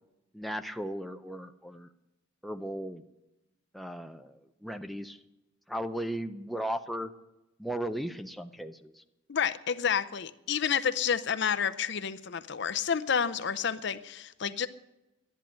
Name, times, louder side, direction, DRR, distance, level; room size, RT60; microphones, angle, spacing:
voice 1, 0.3-1.9 2.4-3.0 3.7-5.2 5.7-7.1 7.6-9.0, right 1 dB, ahead, 0.5 m, -36 dB
voice 2, 9.3-14.7, left 7 dB, 60° left, 0.6 m, -29 dB
12.0 x 10.5 x 9.0 m
head